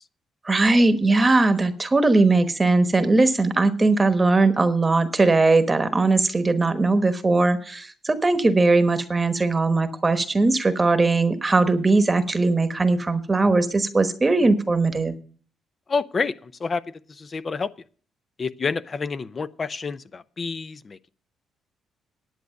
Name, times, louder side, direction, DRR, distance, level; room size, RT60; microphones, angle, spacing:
voice 1, 0.4-15.1, right 3 dB, 20° right, 10 dB, 1.1 m, -20 dB
voice 2, 15.9-16.8 17.1-17.7 18.4-21.0, left 4 dB, 35° left, 15 dB, 0.6 m, -28 dB
10.5 x 8.3 x 6.4 m, 0.42 s
cardioid pair, 95°, 0 cm